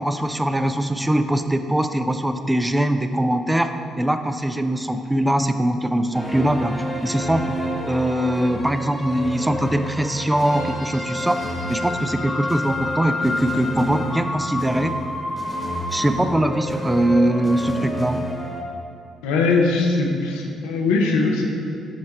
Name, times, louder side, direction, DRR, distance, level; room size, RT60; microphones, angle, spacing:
voice 1, 0.0-6.7 7.0-7.4 7.9-11.4 11.7-14.9 15.9-18.3, right 1 dB, 10° right, 8 dB, 0.3 m, -22 dB
sound 1, 6.1-18.6, left 1 dB, 20° left, 1.2 m, -29 dB
voice 2, 19.2-21.6, left 3 dB, 85° left, 0 dB, 0.6 m, -20 dB
6.4 x 3.4 x 4.2 m, 2.5 s
hypercardioid pair, 50°, 0 cm